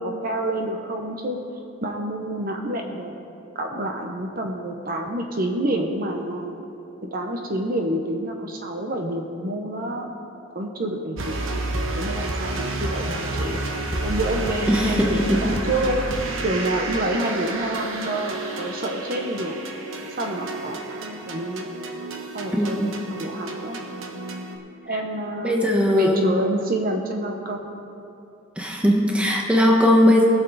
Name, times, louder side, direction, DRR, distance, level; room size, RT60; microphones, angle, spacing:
voice 1, 0.0-1.4 1.8-3.1 3.5-6.5 7.0-10.1 10.5-11.5 12.0-13.6 14.0-16.0 16.4-19.5 20.2-21.7 22.3-23.8 24.8-25.6 25.9-27.8, right 1 dB, 45° right, 3 dB, 0.8 m, -28 dB
sound 1, 11.2-24.6, right 2 dB, 75° right, 1.0 m, -30 dB
voice 2, 22.5-22.9 25.4-26.3 28.6-30.2, left 1 dB, 5° right, -1 dB, 1.1 m, -19 dB
20.0 x 6.9 x 4.0 m, 2.7 s
head